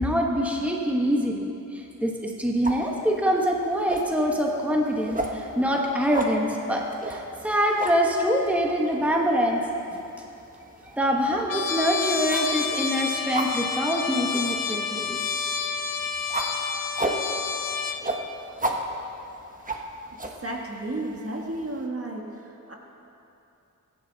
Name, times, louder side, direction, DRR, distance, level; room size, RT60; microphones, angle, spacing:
voice 1, 0.0-9.6 10.8-15.2, equal, 5° right, -1 dB, 1.3 m, -25 dB
sound 1, 2.6-21.9, right 1 dB, 25° right, 1.2 m, -36 dB
Trumpet, 11.5-18.0, left 5 dB, 85° left, 0.8 m, -29 dB
voice 2, 20.4-22.7, right 2 dB, 45° right, 0 dB, 1.8 m, -33 dB
24.0 x 10.5 x 4.1 m, 2.8 s
wide cardioid pair, 95°, 33 cm